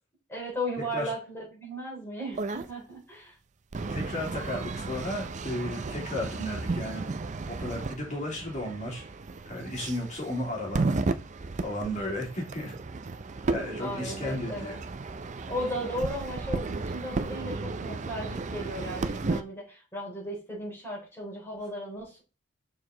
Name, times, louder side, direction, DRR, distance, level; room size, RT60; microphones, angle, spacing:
voice 1, 0.3-3.4 13.8-14.8 15.5-22.2, equal, 10° left, -4 dB, 3.9 m, -36 dB
sound 1, 2.3-2.7 3.7-19.4, right 3 dB, 35° right, 0.5 m, -34 dB
voice 2, 3.9-7.1 7.5-9.0 9.5-10.8 11.6-12.7 13.5-14.8, left 1 dB, 40° left, -1 dB, 2.9 m, -34 dB
6.5 x 4.8 x 3.8 m, 0.31 s
head